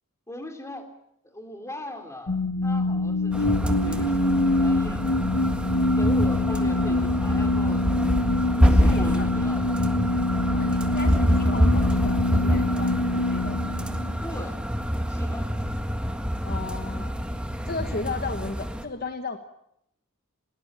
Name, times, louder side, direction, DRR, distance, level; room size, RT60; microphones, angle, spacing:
voice 1, 0.3-0.9 1.2-5.1 5.8-8.1 8.6-9.8 14.2-14.6 15.1-15.5, left 1 dB, 15° left, 5 dB, 3.2 m, -39 dB
sound 1, 2.3-14.4, left 2 dB, 90° left, 1.2 m, -25 dB
sound 2, 3.3-18.8, equal, 5° right, 1.7 m, -26 dB
voice 2, 6.5-6.9 8.8-9.3 10.5-13.6 16.4-17.2 17.6-19.4, left 3 dB, 45° left, 8 dB, 1.3 m, -35 dB
21.0 x 19.0 x 8.7 m, 0.76 s
head